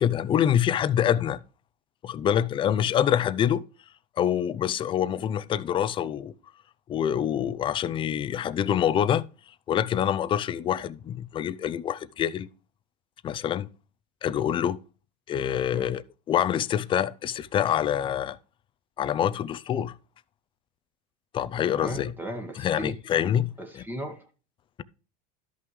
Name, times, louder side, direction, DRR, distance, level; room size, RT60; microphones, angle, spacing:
voice 1, 0.0-1.4 2.0-3.6 4.2-6.3 6.9-9.2 9.7-12.5 13.2-13.7 14.2-14.8 15.3-18.4 19.0-19.9 21.3-22.1 22.5-23.8, left 9 dB, 25° left, 0.5 m, -26 dB
voice 2, 21.8-22.9 23.6-24.2, equal, 10° right, 1.5 m, -36 dB
12.5 x 5.9 x 3.1 m
supercardioid pair, 130°, 20 cm